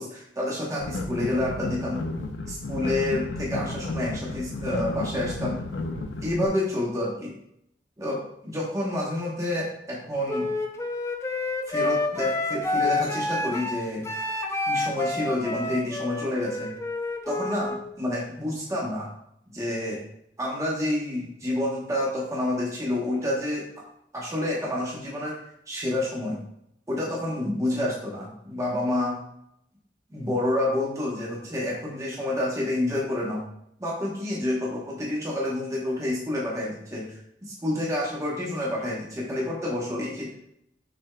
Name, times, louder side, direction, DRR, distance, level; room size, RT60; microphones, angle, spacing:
voice 1, 0.0-2.0 2.5-5.6 6.2-7.3 8.0-10.5 11.7-14.1 14.7-16.7 17.3-19.1 19.5-20.0 20.4-23.7 24.1-25.4 25.7-26.4 26.9-29.2 30.1-33.4 33.8-37.1 37.4-40.3, left 1 dB, 20° right, -4 dB, 0.9 m, -28 dB
sound 1, 0.8-6.5, left 2 dB, 90° left, 0.5 m, -33 dB
Wind instrument woodwind instrument, 10.3-17.8, left 2 dB, 15° left, 0.4 m, -28 dB
6.0 x 3.4 x 2.2 m, 0.76 s
head